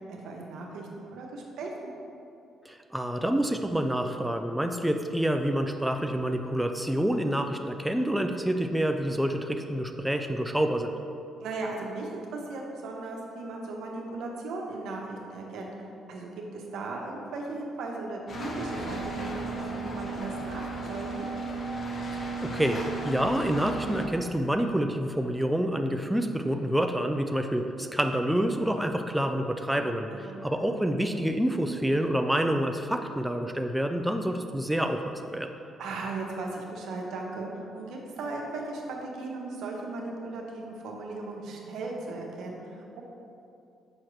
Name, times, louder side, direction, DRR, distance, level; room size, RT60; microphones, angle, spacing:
voice 1, 0.1-1.9 11.4-21.3 30.1-30.4 35.8-43.0, right 3 dB, 80° right, 0 dB, 0.9 m, -37 dB
voice 2, 2.7-10.9 22.1-35.5, right 1 dB, 5° right, 5 dB, 0.3 m, -28 dB
sound 1, 18.3-24.1, right 2 dB, 50° left, 0.9 m, -34 dB
6.4 x 5.7 x 3.1 m, 2.6 s
cardioid pair, 90°, 0 cm